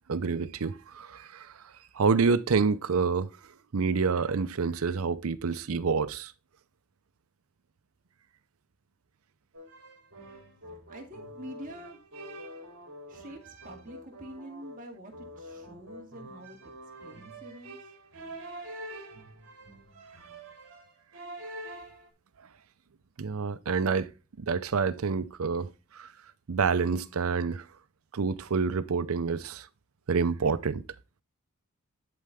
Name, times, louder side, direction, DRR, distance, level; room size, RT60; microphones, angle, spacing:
voice 1, 0.1-6.3 23.2-24.1 24.4-26.1 26.5-27.7 28.1-29.7 30.1-30.8, right 5 dB, 80° right, 0.6 m, -28 dB
sound 1, 9.5-22.1, right 1 dB, 65° right, 2.7 m, -46 dB
voice 2, 10.7-12.0 13.1-16.6 17.0-17.9, right 1 dB, 40° right, 2.0 m, -46 dB
11.0 x 4.3 x 3.5 m
head